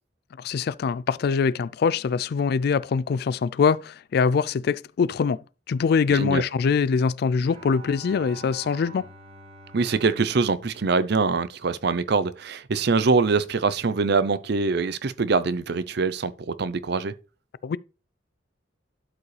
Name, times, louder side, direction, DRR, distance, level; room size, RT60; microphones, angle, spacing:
voice 1, 0.4-5.4 5.7-9.1 17.6-17.8, left 5 dB, 55° left, 0.3 m, -23 dB
voice 2, 6.1-6.4 9.7-17.1, right 4 dB, 60° right, 0.6 m, -24 dB
Bowed string instrument, 7.5-11.9, right 3 dB, 35° right, 2.2 m, -47 dB
12.0 x 4.8 x 3.3 m
head